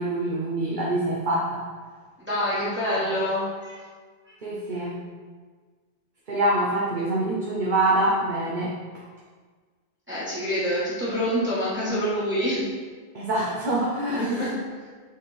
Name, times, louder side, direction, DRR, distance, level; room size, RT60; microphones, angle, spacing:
voice 1, 0.0-1.6 4.4-4.9 6.3-8.7 13.1-14.3, right 1 dB, 45° right, -5 dB, 0.9 m, -25 dB
voice 2, 2.2-3.8 10.1-12.6 14.1-14.6, equal, 10° right, -11 dB, 1.5 m, -26 dB
7.2 x 3.6 x 4.1 m, 1.5 s
omnidirectional pair, 1.1 m